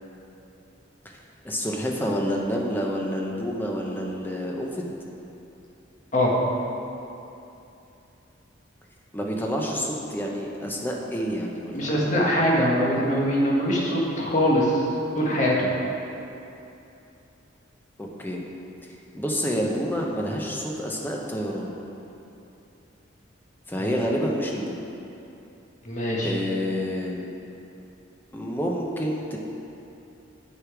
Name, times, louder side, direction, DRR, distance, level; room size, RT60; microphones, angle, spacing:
voice 1, 1.4-4.9 9.1-12.1 18.0-18.4 18.8-21.7 23.7-24.8 26.2-27.3 28.3-29.4, equal, 10° left, -1 dB, 0.8 m, -28 dB
voice 2, 11.7-14.8 15.2-15.7 25.8-26.3, equal, 35° left, -3 dB, 1.4 m, -22 dB
7.7 x 6.7 x 4.8 m, 2.8 s
head